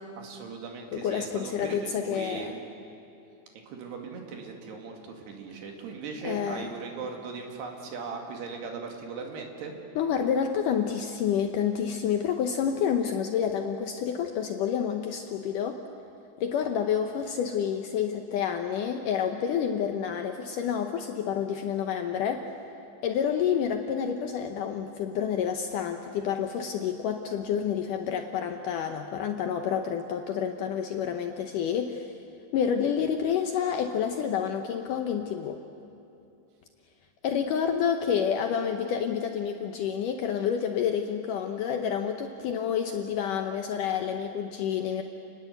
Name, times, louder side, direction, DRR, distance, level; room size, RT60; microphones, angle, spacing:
voice 1, 0.2-2.5 3.5-9.7, right 4 dB, 70° right, 2 dB, 4.3 m, -39 dB
voice 2, 0.9-2.6 6.2-6.7 10.0-15.8 16.4-22.5 23.0-32.1 32.5-35.6 37.2-45.0, left 8 dB, 80° left, 5 dB, 1.9 m, -29 dB
29.0 x 20.0 x 8.1 m, 2.7 s
omnidirectional pair, 4.9 m